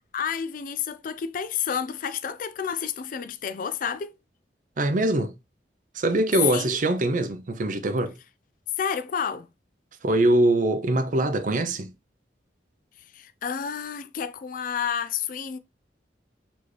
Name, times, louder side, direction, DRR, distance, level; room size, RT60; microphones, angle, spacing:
voice 1, 0.1-4.2 6.5-6.8 8.8-9.5 13.1-15.6, left 7 dB, 50° left, 0.4 m, -30 dB
voice 2, 4.8-5.3 5.9-8.1 10.0-11.9, right 1 dB, 45° right, 0.6 m, -23 dB
4.3 x 2.9 x 3.2 m
head